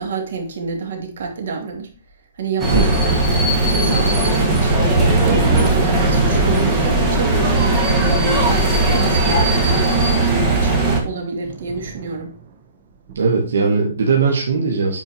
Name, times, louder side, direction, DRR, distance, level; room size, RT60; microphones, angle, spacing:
voice 1, 0.0-1.9 2.3-3.2 3.7-4.9 5.2-7.4 8.0-9.7 10.2-12.3, right 5 dB, 65° right, 2.3 m, -28 dB
sound 1, 2.6-11.0, right 2 dB, 15° right, 1.7 m, -17 dB
Thunder, 4.4-12.7 13.1-13.2, right 5 dB, 35° right, 1.1 m, -32 dB
voice 2, 13.1-15.0, right 4 dB, 85° right, 1.6 m, -18 dB
9.1 x 4.5 x 2.9 m
hypercardioid pair, 160°, 0 cm